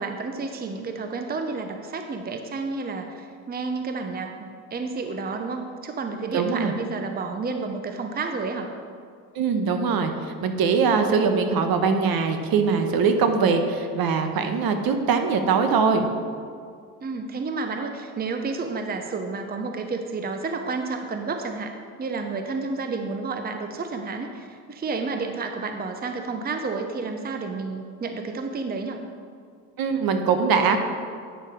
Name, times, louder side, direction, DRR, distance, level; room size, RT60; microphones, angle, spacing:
voice 1, 0.0-8.7 17.0-21.7 22.0-29.0, right 4 dB, 20° right, 5 dB, 0.8 m, -30 dB
voice 2, 6.3-6.7 9.3-10.1 10.4-16.1 29.8-30.8, right 5 dB, 55° right, 7 dB, 1.1 m, -22 dB
9.1 x 6.4 x 5.1 m, 2.2 s
supercardioid pair, 75°, 43 cm